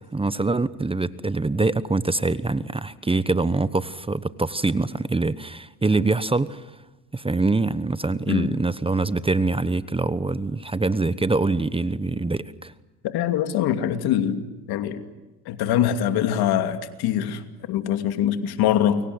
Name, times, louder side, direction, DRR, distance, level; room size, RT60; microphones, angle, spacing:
voice 1, 0.1-6.6 7.1-12.7, right 3 dB, 15° right, 15 dB, 1.1 m, -24 dB
voice 2, 13.0-14.4 14.7-15.0 15.5-19.0, left 10 dB, 70° left, 8 dB, 2.7 m, -23 dB
29.5 x 23.5 x 8.0 m, 1.1 s
supercardioid pair, 80°, 39 cm